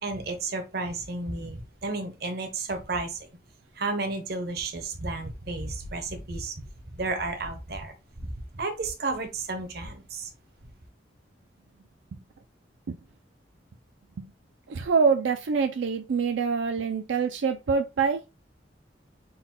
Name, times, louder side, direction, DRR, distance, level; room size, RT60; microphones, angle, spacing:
voice 1, 0.0-3.3 3.8-6.6 6.9-10.3, right 3 dB, 60° right, 0.8 m, -32 dB
voice 2, 14.7-18.2, right 5 dB, 90° right, 0.4 m, -25 dB
3.9 x 2.2 x 4.3 m
head